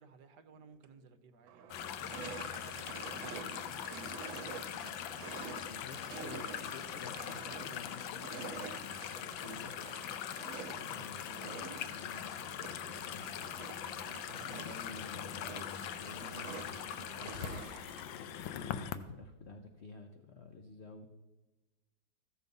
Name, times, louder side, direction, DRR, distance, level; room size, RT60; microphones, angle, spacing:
voice 1, 0.0-4.8 10.8-11.1 14.2-14.7, right 5 dB, 65° right, 8 dB, 1.4 m, -60 dB
sound 1, 0.8-0.9 1.5-18.3, right 7 dB, 90° right, 1.5 m, -48 dB
sound 2, 1.7-19.0, left 10 dB, 85° left, 1.4 m, -42 dB
Rustle walking by the leaves, 5.4-11.1 11.4-18.0, right 2 dB, 30° right, 2.8 m, -66 dB
voice 2, 5.6-9.7 10.7-13.3 14.3-21.1, left 3 dB, 55° left, 5 dB, 0.7 m, -51 dB
14.5 x 7.0 x 5.4 m, 1.1 s
omnidirectional pair, 2.1 m